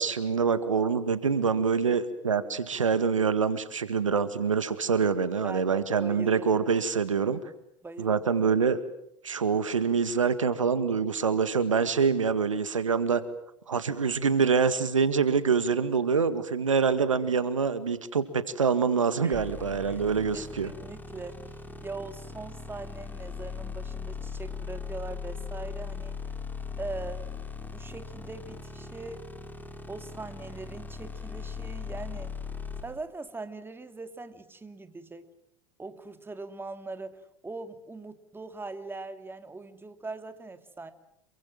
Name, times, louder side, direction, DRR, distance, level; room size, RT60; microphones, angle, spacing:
voice 1, 0.0-7.4 8.0-8.8 9.2-13.2 13.7-20.7, right 5 dB, 85° right, 13 dB, 1.8 m, -25 dB
voice 2, 5.4-6.6 7.8-8.2 19.2-19.4 19.9-20.0 20.3-21.6 21.8-26.2 26.8-27.3 27.7-29.3 29.9-32.4 32.8-35.3 35.8-40.9, right 3 dB, 15° right, 9 dB, 2.6 m, -41 dB
sound 1, 19.3-32.8, left 5 dB, 10° left, 4.6 m, -39 dB
28.0 x 23.5 x 7.6 m, 0.74 s
hypercardioid pair, 80°, 16 cm